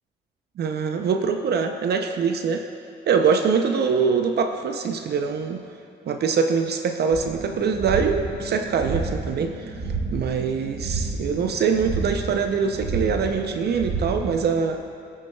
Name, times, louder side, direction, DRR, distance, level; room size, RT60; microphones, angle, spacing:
voice 1, 0.6-2.6 3.1-5.6 6.1-9.7 10.1-14.8, right 6 dB, 55° right, 6 dB, 0.5 m, -23 dB
sound 1, 7.1-14.5, right 3 dB, 85° right, 1.7 m, -31 dB
17.5 x 6.1 x 2.2 m, 2.8 s
cardioid pair, 90°, 20 cm